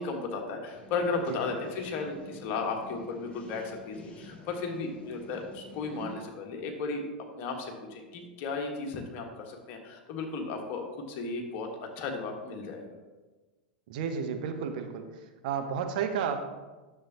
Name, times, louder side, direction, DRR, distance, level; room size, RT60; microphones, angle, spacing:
voice 1, 0.0-7.1 7.3-11.7 12.0-12.9, left 4 dB, 45° left, 3 dB, 1.4 m, -35 dB
sound 1, 0.7-6.1, left 2 dB, 20° left, 1.8 m, -48 dB
voice 2, 13.9-15.1 15.4-16.4, right 7 dB, 55° right, 6 dB, 0.9 m, -31 dB
10.0 x 6.9 x 2.9 m, 1.2 s
figure-of-eight pair, 90°, 5 cm